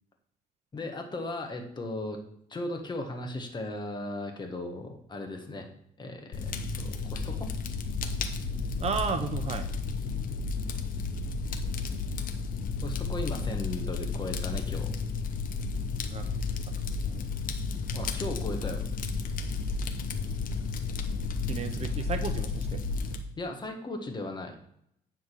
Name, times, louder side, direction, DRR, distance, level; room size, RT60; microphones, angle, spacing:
voice 1, 0.7-2.2 2.5-5.7 6.0-7.5 12.8-14.9 17.9-18.8 23.4-24.6, left 2 dB, 25° left, 3 dB, 1.6 m, -37 dB
Fire, 6.3-23.2, left 4 dB, 55° left, 1.0 m, -32 dB
voice 2, 8.8-9.7 16.1-16.3 17.0-17.3 21.5-22.8, right 5 dB, 40° right, 8 dB, 0.8 m, -33 dB
9.6 x 4.0 x 6.3 m, 0.73 s
cardioid pair, 110°, 17 cm